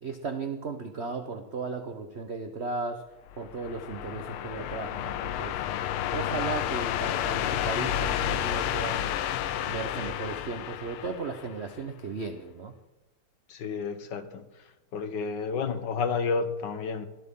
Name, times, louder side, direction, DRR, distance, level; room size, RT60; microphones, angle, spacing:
voice 1, 0.0-3.0 3.4-5.6 6.1-9.1 9.6-12.7, right 4 dB, 65° right, 0.6 m, -36 dB
sound 1, 3.3-11.8, left 11 dB, 80° left, 1.5 m, -31 dB
voice 2, 13.5-14.4 14.9-17.1, left 5 dB, 60° left, 1.5 m, -30 dB
21.5 x 12.5 x 3.7 m
omnidirectional pair, 2.4 m